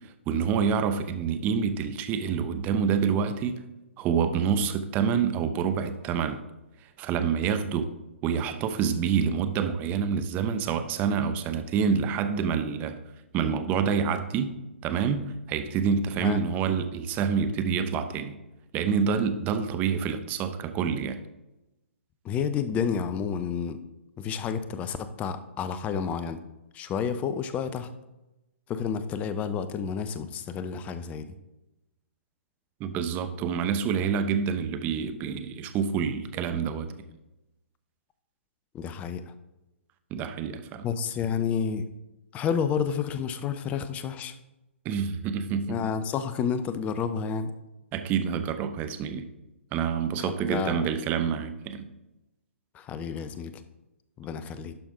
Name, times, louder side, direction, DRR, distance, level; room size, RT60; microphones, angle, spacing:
voice 1, 0.3-3.6 4.0-6.4 7.0-7.9 8.2-13.0 13.3-18.4 18.7-21.2 32.8-36.9 40.1-40.9 44.8-45.8 47.9-49.2 49.7-51.9, right 6 dB, 25° right, 10 dB, 0.7 m, -27 dB
voice 2, 22.2-23.8 24.2-26.4 26.7-27.9 28.7-31.3 38.7-39.3 40.8-41.9 42.3-44.3 45.7-47.5 50.2-50.9 52.7-53.5 54.2-54.7, left 7 dB, 20° left, 11 dB, 0.6 m, -30 dB
11.5 x 5.3 x 3.6 m, 0.97 s
figure-of-eight pair, 125°, 7 cm